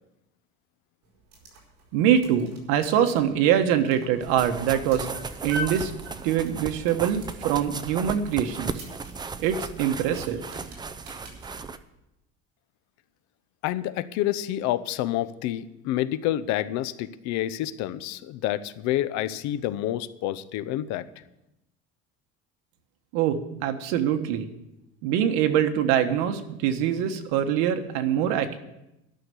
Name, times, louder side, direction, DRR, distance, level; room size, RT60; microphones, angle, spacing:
sound 1, 1.0-11.5, left 1 dB, 60° right, 4.9 m, -44 dB
voice 1, 1.9-5.1 5.4-5.9 6.2-8.9 9.4-10.4 23.1-24.5 25.0-28.6, right 9 dB, 90° right, 8 dB, 1.3 m, -24 dB
sound 2, 4.2-11.8, right 4 dB, 15° right, 0.5 m, -36 dB
voice 2, 13.6-21.0, left 13 dB, 70° left, 14 dB, 0.8 m, -28 dB
12.0 x 6.6 x 9.6 m, 0.90 s
cardioid pair, 145°, 29 cm